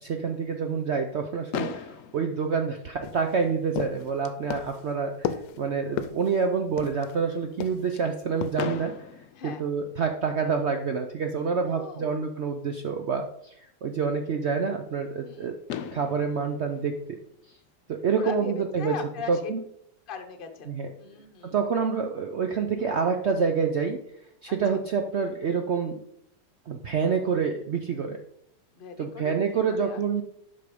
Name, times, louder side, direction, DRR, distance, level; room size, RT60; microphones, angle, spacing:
voice 1, 0.0-8.9 9.4-15.5 15.9-17.2 17.9-18.9 19.3-19.6 20.7-20.9 21.4-24.0 24.4-26.0 26.7-28.2 29.0-30.2, right 5 dB, 70° right, 5 dB, 0.6 m, -27 dB
Fireworks, 1.5-3.5 4.4-4.5 4.6-4.9 5.2-5.3 8.6-10.4 12.1-12.2 15.2-15.3 15.7-18.0, left 9 dB, 65° left, 0.8 m, -38 dB
sound 1, 3.0-7.2 7.6-8.0 8.4-8.6, left 9 dB, 90° left, 1.3 m, -34 dB
voice 2, 11.6-12.2 15.2-15.5 18.1-19.5 20.1-20.7 21.0-21.6 24.5-24.8 28.8-29.4 29.7-30.2, left 6 dB, 40° left, 5 dB, 0.9 m, -39 dB
7.7 x 5.5 x 5.2 m, 0.74 s
omnidirectional pair, 1.9 m